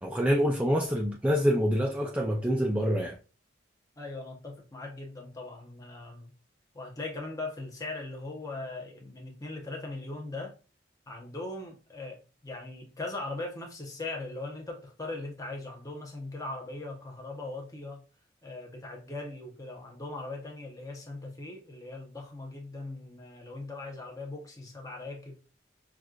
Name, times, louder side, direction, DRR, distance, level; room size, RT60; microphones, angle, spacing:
voice 1, 0.0-3.2, equal, 5° right, 0.3 m, -26 dB
voice 2, 4.0-6.3 6.7-10.5 11.1-18.0 18.4-25.4, left 2 dB, 20° left, 0.8 m, -40 dB
6.0 x 2.4 x 2.4 m
head